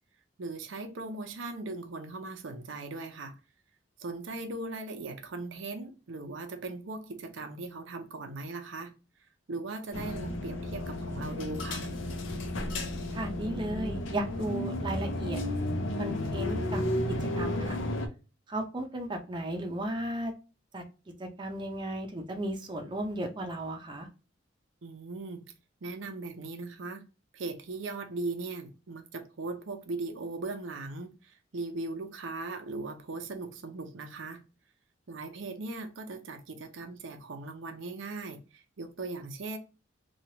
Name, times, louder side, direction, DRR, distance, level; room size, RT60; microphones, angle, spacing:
voice 1, 0.4-3.4 4.0-8.9 9.5-11.9 24.8-25.4 25.8-27.0 27.3-34.4 35.1-39.6, right 3 dB, 85° right, 0.6 m, -39 dB
sound 1, 9.9-18.1, left 1 dB, 90° left, 0.6 m, -33 dB
voice 2, 13.1-15.4 16.0-16.8 17.2-17.8 18.5-20.3 20.7-20.8 21.2-24.1, right 1 dB, 25° right, 0.5 m, -35 dB
3.1 x 2.3 x 2.7 m
head